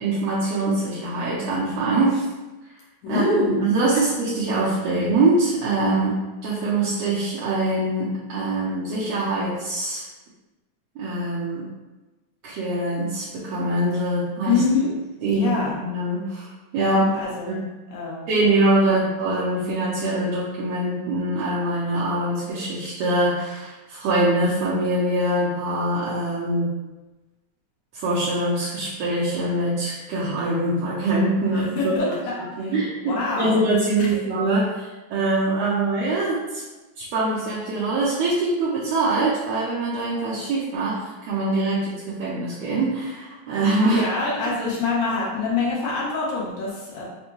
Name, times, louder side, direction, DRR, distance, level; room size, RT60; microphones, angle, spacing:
voice 1, 0.0-2.2 3.1-6.1 6.4-10.0 10.9-11.6 12.4-14.6 15.2-16.5 16.7-17.0 17.5-17.6 18.3-26.7 27.9-32.1 32.6-36.6 37.0-44.0, right 2 dB, 75° right, -8 dB, 1.7 m, -23 dB
voice 2, 3.0-3.6 14.5-14.9 15.3-15.8 16.8-17.6 17.9-18.5 18.8-19.0 31.5-32.1 32.6-32.7 33.0-33.6 34.1-34.3 43.8-47.0, left 3 dB, 70° left, -5 dB, 2.2 m, -25 dB
5.2 x 2.1 x 3.0 m, 1.1 s
omnidirectional pair, 3.4 m